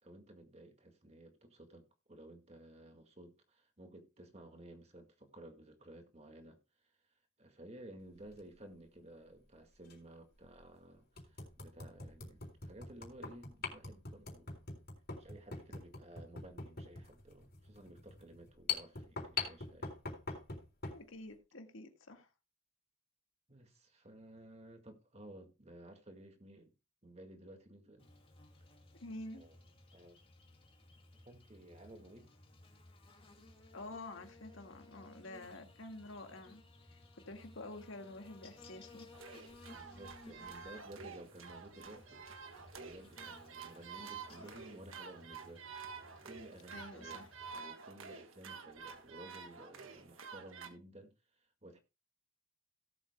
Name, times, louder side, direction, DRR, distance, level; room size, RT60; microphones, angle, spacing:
voice 1, 0.0-6.6 7.4-14.5 15.2-19.9 23.5-26.7 27.0-28.1 29.3-29.6 29.9-30.2 31.3-32.3 39.7-42.2 42.7-45.7 46.2-51.8, right 1 dB, 30° right, 1.9 m, -55 dB
sound 1, 8.2-8.4 9.8-9.9 10.5-10.6 11.2-21.0, left 5 dB, 50° left, 3.9 m, -43 dB
voice 2, 20.9-22.3 28.9-29.5 33.7-36.6 36.9-39.1 46.7-47.3, left 2 dB, 75° left, 1.9 m, -49 dB
Buzz, 28.0-47.5, left 2 dB, 25° left, 2.3 m, -59 dB
sound 2, 39.1-50.7, right 5 dB, 80° right, 1.5 m, -50 dB
17.5 x 7.8 x 2.3 m
head